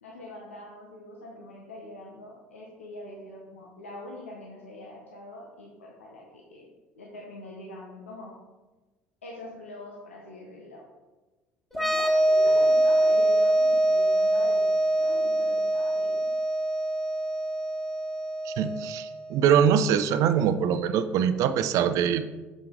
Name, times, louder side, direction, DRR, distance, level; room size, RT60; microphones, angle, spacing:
voice 1, 0.0-6.7 7.0-8.3 9.2-10.8 11.7-16.2, left 1 dB, 85° left, -3 dB, 0.8 m, -43 dB
sound 1, 11.7-19.2, right 1 dB, 5° left, 1.4 m, -24 dB
voice 2, 18.5-22.3, right 8 dB, 55° right, 11 dB, 0.4 m, -23 dB
6.8 x 5.0 x 3.7 m, 1.2 s
figure-of-eight pair, 60°, 7 cm